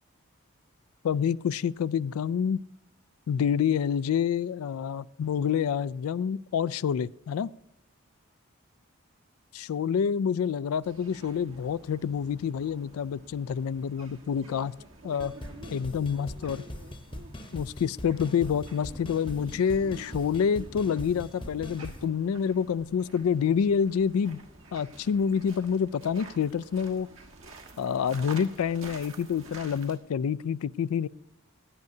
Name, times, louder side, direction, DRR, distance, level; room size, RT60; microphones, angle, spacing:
voice 1, 1.0-2.6 3.3-7.5 9.5-14.7 15.0-15.3 15.7-16.6 17.5-24.4 24.7-27.1 27.8-31.1, left 7 dB, 80° left, 18 dB, 0.3 m, -27 dB
sound 1, 10.8-30.0, right 2 dB, 65° right, 1.6 m, -49 dB
sound 2, 15.2-22.0, left 1 dB, 25° left, 0.8 m, -42 dB
17.0 x 10.5 x 2.7 m, 0.81 s
head